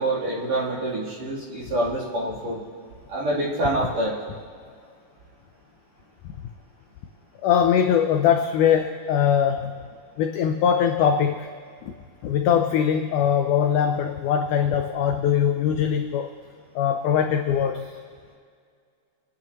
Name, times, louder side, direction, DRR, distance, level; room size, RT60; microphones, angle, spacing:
voice 1, 0.0-2.6 3.1-4.1, right 1 dB, 45° right, -7 dB, 4.1 m, -26 dB
voice 2, 7.4-9.7 10.2-11.5 11.8-11.9 12.2-16.3 16.7-17.9, left 8 dB, 85° left, 5 dB, 1.8 m, -21 dB
28.5 x 10.0 x 3.0 m, 2.1 s
omnidirectional pair, 4.3 m